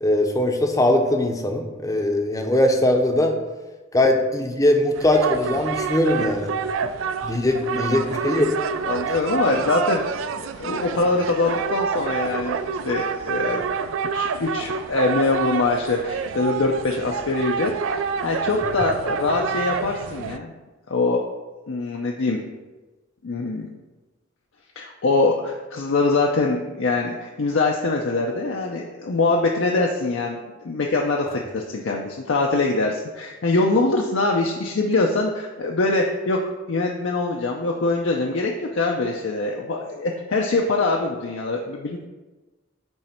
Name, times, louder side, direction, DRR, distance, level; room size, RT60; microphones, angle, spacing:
voice 1, 0.0-3.4 3.9-6.5 7.2-8.5, left 1 dB, 15° left, 4 dB, 0.6 m, -20 dB
sound 1, 4.9-20.4, right 6 dB, 80° right, 0.3 m, -28 dB
voice 2, 8.8-10.2 10.6-12.6 12.8-13.6 14.1-20.5 20.9-21.3 21.7-22.4 23.2-23.7 24.8-30.4 30.6-42.0, left 3 dB, 70° left, 0 dB, 0.6 m, -23 dB
8.9 x 3.2 x 4.4 m, 1.2 s
head